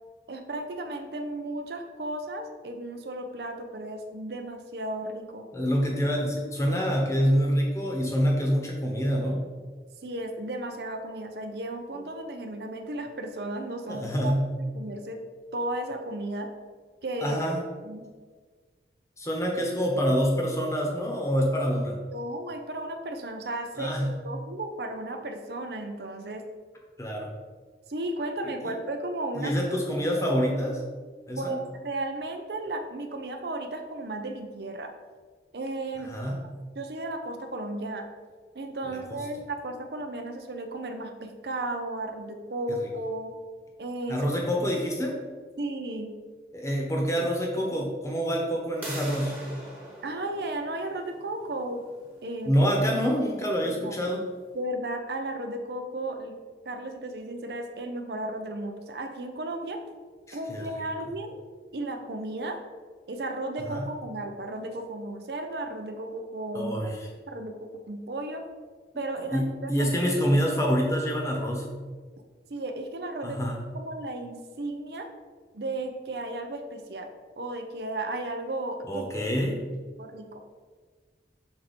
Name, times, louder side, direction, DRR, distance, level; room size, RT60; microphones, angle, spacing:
voice 1, 0.3-5.4 10.0-14.3 14.6-15.2 15.5-16.5 17.0-17.4 17.8-18.0 22.1-26.4 27.9-29.5 31.4-34.9 35.5-36.1 36.7-38.0 38.5-43.3 43.8-44.3 45.6-46.1 50.0-51.8 52.2-52.6 53.6-53.9 54.5-56.4 56.6-59.8 60.3-61.4 61.7-62.6 63.1-66.7 67.3-68.4 69.0-69.9 72.5-73.5 73.7-75.1 75.5-77.1 77.4-79.0 80.0-80.4, right 1 dB, 70° right, 5 dB, 0.6 m, -34 dB
voice 2, 5.5-9.4 13.9-14.5 17.2-17.6 19.2-22.0 23.8-24.2 27.0-27.3 29.3-30.8 31.3-31.6 36.1-36.4 38.8-39.0 42.7-42.8 44.1-45.2 46.5-49.4 52.4-54.2 60.3-60.9 63.7-63.9 66.5-67.1 69.3-71.7 73.2-73.6 78.9-79.6, equal, 15° left, 0 dB, 1.1 m, -26 dB
sound 1, 48.8-54.4, right 1 dB, 10° right, 1.2 m, -44 dB
6.5 x 4.3 x 4.3 m, 1.5 s
head